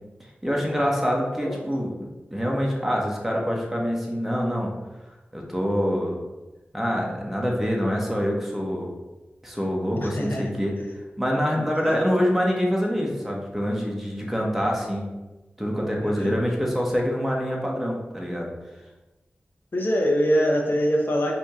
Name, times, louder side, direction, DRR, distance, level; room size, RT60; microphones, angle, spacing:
voice 1, 0.4-4.7 5.3-6.2 6.7-8.9 9.4-10.8 11.2-15.1 15.6-18.5, equal, 5° right, -2 dB, 1.2 m, -25 dB
voice 2, 10.0-10.8 11.8-11.9 16.0-16.4 19.7-21.3, equal, 60° left, 0 dB, 0.9 m, -24 dB
4.8 x 3.0 x 3.7 m, 1.1 s
cardioid pair, 45°, 4 cm